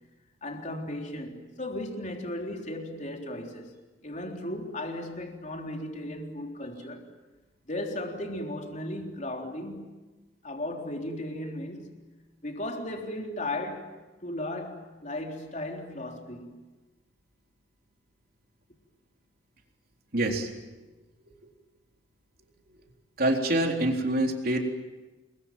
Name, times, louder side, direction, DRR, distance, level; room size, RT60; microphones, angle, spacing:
voice 1, 0.4-3.7 4.0-7.0 7.6-9.9 10.4-12.1 12.4-16.6, left 1 dB, 40° left, 3.7 m, -36 dB
voice 2, 20.1-20.5 23.2-24.6, right 1 dB, 50° right, 3.8 m, -25 dB
29.0 x 22.0 x 9.1 m
head